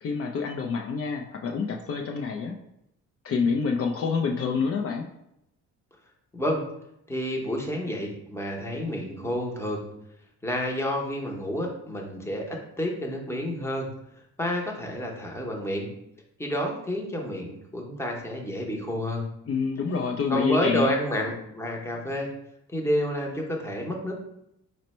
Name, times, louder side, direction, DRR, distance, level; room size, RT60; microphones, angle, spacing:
voice 1, 0.0-2.5 3.2-5.1 19.5-21.0, left 5 dB, 50° left, 1 dB, 0.5 m, -27 dB
voice 2, 7.1-9.9 10.4-13.9 14.4-15.9 16.4-19.2 20.3-22.3 22.7-24.1, equal, 10° left, 0 dB, 0.8 m, -29 dB
4.1 x 2.1 x 4.2 m, 0.81 s
cardioid pair, 90°, 30 cm